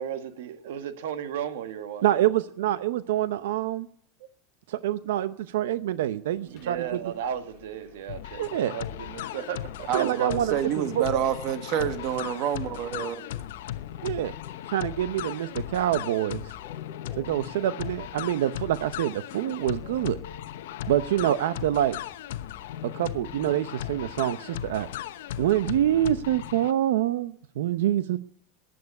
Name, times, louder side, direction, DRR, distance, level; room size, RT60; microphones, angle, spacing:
voice 1, 0.0-2.0 6.4-9.9, right 9 dB, 75° right, 1.4 m, -35 dB
voice 2, 2.0-3.9 4.7-6.8 8.4-8.7 9.9-10.5 14.0-14.3 14.7-16.4 17.2-20.2 20.9-22.0 22.8-24.9 25.4-28.2, right 12 dB, 90° right, 0.7 m, -26 dB
Subway metro underground, 6.3-25.7, left 8 dB, 35° left, 1.8 m, -52 dB
sound 1, 8.1-26.7, left 12 dB, 80° left, 0.9 m, -37 dB
voice 3, 9.9-13.2, right 9 dB, 40° right, 1.3 m, -28 dB
14.5 x 9.4 x 9.5 m
supercardioid pair, 175°, 0 cm